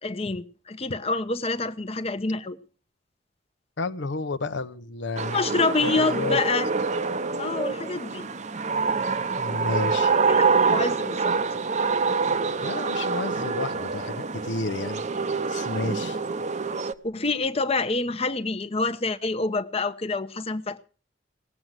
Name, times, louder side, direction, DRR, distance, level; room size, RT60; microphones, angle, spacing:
voice 1, 0.0-2.6 5.3-6.7 7.4-8.3 10.3-11.3 17.0-20.8, left 3 dB, 35° left, 0.9 m, -27 dB
voice 2, 3.8-6.4 9.4-10.2 12.6-15.0 15.5-16.2, left 3 dB, 75° left, 0.9 m, -31 dB
sound 1, 5.2-16.9, right 4 dB, 40° right, 0.8 m, -26 dB
18.5 x 7.9 x 7.4 m
head